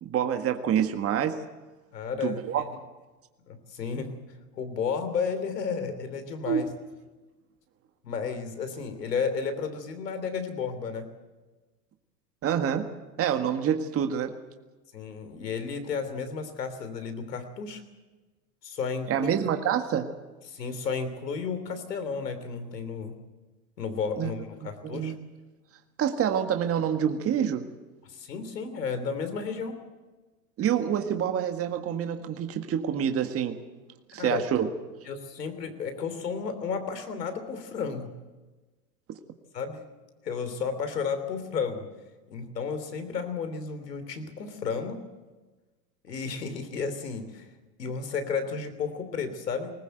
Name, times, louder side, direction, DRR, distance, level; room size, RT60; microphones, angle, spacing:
voice 1, 0.0-1.4 2.2-2.6 6.5-6.6 12.4-12.9 13.2-14.3 19.1-20.1 24.2-24.3 24.8-25.2 26.0-27.7 30.6-33.5 34.1-34.7 39.1-39.2, right 9 dB, 30° right, 6 dB, 1.7 m, -27 dB
voice 2, 1.9-2.4 2.7-2.8 3.5-4.1 4.5-6.7 8.0-11.1 14.9-17.8 18.6-19.3 20.5-23.1 23.8-25.1 28.1-29.7 34.2-34.4 35.1-38.1 39.5-39.8 40.2-41.8 42.3-45.0 46.0-47.5 47.8-49.7, left 5 dB, 80° left, 9 dB, 3.3 m, -32 dB
20.0 x 20.0 x 8.0 m, 1.2 s
hypercardioid pair, 100°, 48 cm